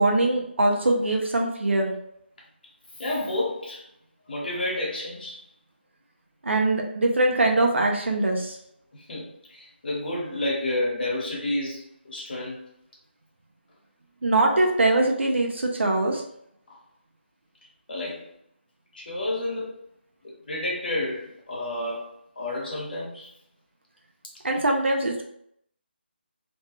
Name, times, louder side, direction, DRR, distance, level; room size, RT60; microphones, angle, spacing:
voice 1, 0.0-1.9 6.4-8.6 14.2-16.2 24.4-25.3, right 2 dB, 85° right, 1 dB, 0.8 m, -22 dB
voice 2, 3.0-3.8 4.3-5.4 8.9-12.6 14.6-14.7 16.7-16.8 17.9-18.3 18.9-19.7 20.2-22.1 22.4-23.3, left 1 dB, 55° left, -4 dB, 1.4 m, -30 dB
3.1 x 2.2 x 3.1 m, 0.72 s
figure-of-eight pair, 170°, 6 cm